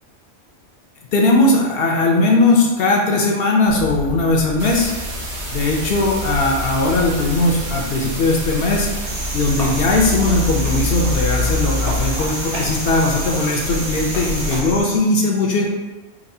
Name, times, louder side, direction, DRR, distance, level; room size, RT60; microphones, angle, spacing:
voice 1, 1.1-4.9 5.5-8.9 9.3-15.7, left 2 dB, 65° left, 0 dB, 0.7 m, -18 dB
sound 1, 3.7-14.8, equal, 75° right, 1.1 m, -27 dB
sound 2, 4.6-14.6, right 2 dB, 55° right, 0.6 m, -32 dB
Cricket, 9.0-15.0, right 1 dB, 35° right, 1.0 m, -30 dB
4.0 x 2.3 x 2.6 m, 1.2 s
omnidirectional pair, 1.2 m